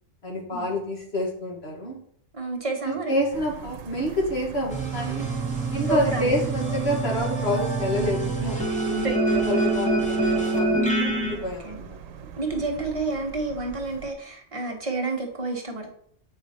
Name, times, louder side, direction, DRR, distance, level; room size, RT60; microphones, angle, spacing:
voice 1, 0.2-2.0 2.8-5.3 5.7-8.6 8.8-12.0, left 1 dB, 55° left, -2 dB, 2.0 m, -28 dB
voice 2, 2.3-3.1 5.9-6.4 9.0-10.0 11.3-11.8 12.4-15.9, right 3 dB, 25° right, 1 dB, 1.2 m, -30 dB
sound 1, 3.3-14.1, right 9 dB, 85° right, 1.0 m, -40 dB
sound 2, 4.7-11.3, right 2 dB, 5° left, 1.2 m, -26 dB
7.9 x 4.8 x 4.3 m, 0.66 s
omnidirectional pair, 1.3 m